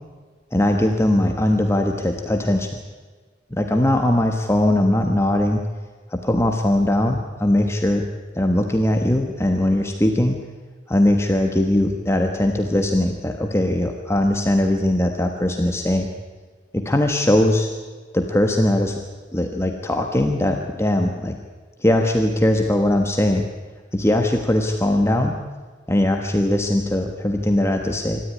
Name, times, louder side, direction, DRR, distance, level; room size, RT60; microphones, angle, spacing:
voice 1, 0.5-2.8 3.5-5.6 6.1-8.1 8.3-10.4 10.9-16.1 16.7-17.7 18.1-19.0 19.3-21.3 21.8-23.5 23.9-25.4 25.9-28.2, left 1 dB, 15° left, 3 dB, 1.4 m, -20 dB
26.0 x 13.5 x 9.7 m, 1.4 s
head